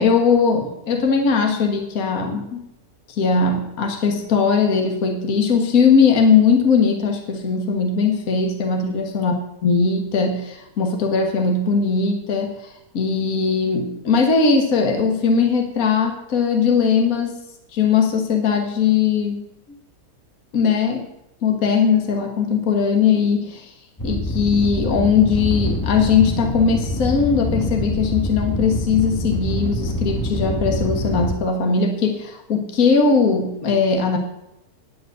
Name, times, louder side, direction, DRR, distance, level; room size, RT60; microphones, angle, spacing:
voice 1, 0.0-2.7 3.1-9.4 9.6-12.7 12.9-17.4 17.7-19.5 20.5-21.1 21.4-23.7 24.0-34.2, left 5 dB, 55° left, 3 dB, 1.8 m, -19 dB
sound 1, 24.0-31.4, left 1 dB, 15° left, 1.2 m, -25 dB
10.5 x 7.8 x 7.8 m, 0.89 s
omnidirectional pair, 1.8 m